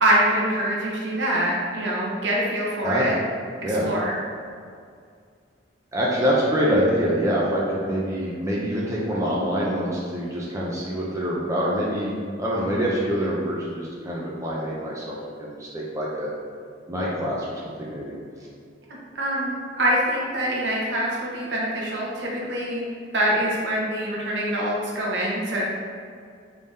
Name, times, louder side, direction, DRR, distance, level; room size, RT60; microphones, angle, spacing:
voice 1, 0.0-3.1 3.8-4.1 19.1-19.5 19.8-22.8 23.1-25.6, right 1 dB, 70° right, -4 dB, 0.8 m, -24 dB
voice 2, 5.9-12.1 12.4-16.3 16.9-18.1, equal, 15° right, -5 dB, 0.4 m, -25 dB
3.5 x 3.3 x 2.7 m, 2.2 s
head